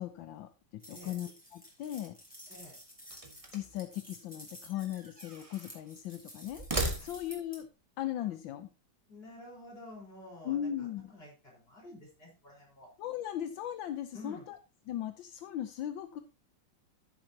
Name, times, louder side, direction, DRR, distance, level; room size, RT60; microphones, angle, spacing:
voice 1, 0.0-2.2 3.5-6.7 7.0-7.7 8.0-8.7 10.4-11.1 13.0-14.6 14.9-16.2, left 11 dB, 80° left, 9 dB, 1.5 m, -38 dB
sound 1, 0.8-7.6, equal, 5° left, 3.3 m, -52 dB
voice 2, 2.5-2.8 7.0-7.1 8.2-8.3 9.1-12.9 14.1-14.5, left 1 dB, 30° left, -2 dB, 4.8 m, -50 dB
sound 2, 3.0-3.8 4.7-5.8 6.5-7.5, right 2 dB, 20° right, 1.4 m, -37 dB
14.5 x 7.2 x 2.8 m, 0.29 s
omnidirectional pair, 2.1 m